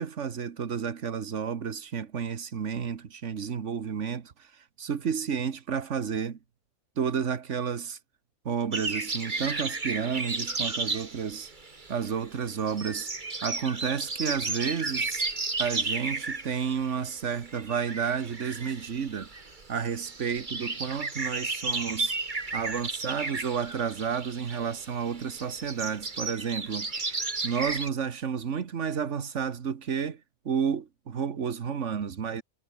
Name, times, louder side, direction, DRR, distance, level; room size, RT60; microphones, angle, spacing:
voice 1, 0.0-4.5 4.8-6.4 7.0-8.0 8.4-11.5 11.9-13.1 13.4-15.2 15.6-19.3 19.7-22.2 22.5-30.2 30.4-32.4, right 7 dB, 65° right, 1.7 m, -31 dB
sound 1, 8.7-27.9, right 3 dB, 35° right, 2.2 m, -34 dB
omnidirectional pair, 1.3 m